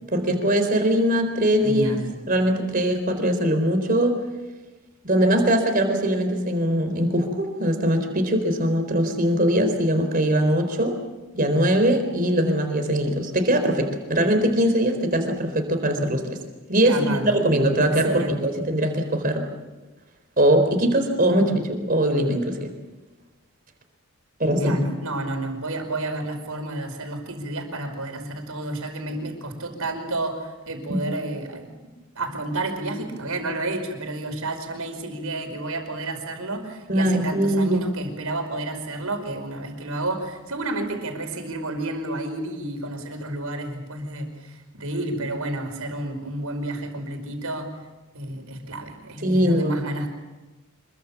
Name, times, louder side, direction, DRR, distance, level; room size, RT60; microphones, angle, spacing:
voice 1, 0.1-1.9 2.3-4.2 5.0-11.0 11.3-16.4 16.7-19.5 20.4-22.7 24.4-24.8 30.9-31.0 36.9-37.8 49.2-49.8, right 1 dB, 40° right, 6 dB, 4.1 m, -21 dB
voice 2, 1.6-2.2 16.8-17.4 17.8-18.4 24.6-31.7 32.1-47.7 48.1-50.1, right 2 dB, 80° right, 4 dB, 5.2 m, -30 dB
26.5 x 23.0 x 7.3 m, 1.2 s
head